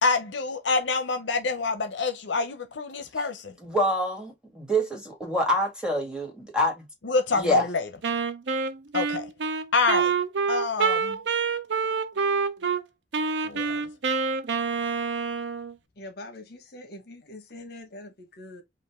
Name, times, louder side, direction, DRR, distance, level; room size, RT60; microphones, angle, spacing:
voice 1, 0.0-3.5 7.0-7.9 8.9-9.3 9.7-10.1 10.5-11.2 13.4-13.8, left 3 dB, 80° left, 0.7 m, -26 dB
voice 2, 3.6-6.9 7.3-7.7, equal, 5° right, 1.8 m, -26 dB
Wind instrument woodwind instrument, 8.0-12.8 13.1-15.7, right 5 dB, 70° right, 0.6 m, -27 dB
voice 3, 16.0-18.6, left 1 dB, 60° left, 1.3 m, -43 dB
5.2 x 2.5 x 3.5 m
head